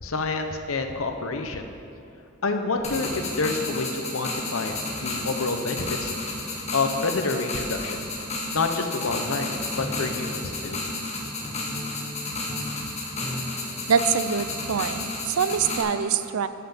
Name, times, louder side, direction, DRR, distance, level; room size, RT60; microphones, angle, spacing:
voice 1, 0.0-1.6 2.4-6.1 6.7-8.0 8.5-9.5 9.8-10.8, left 3 dB, 75° left, 6 dB, 0.9 m, -28 dB
sound 1, 2.8-15.8, left 2 dB, 35° left, 1.7 m, -32 dB
Piano, 9.8-15.7, left 1 dB, 10° left, 0.4 m, -40 dB
voice 2, 13.9-16.5, right 6 dB, 90° right, 12 dB, 0.5 m, -24 dB
11.0 x 5.9 x 6.9 m, 2.7 s
head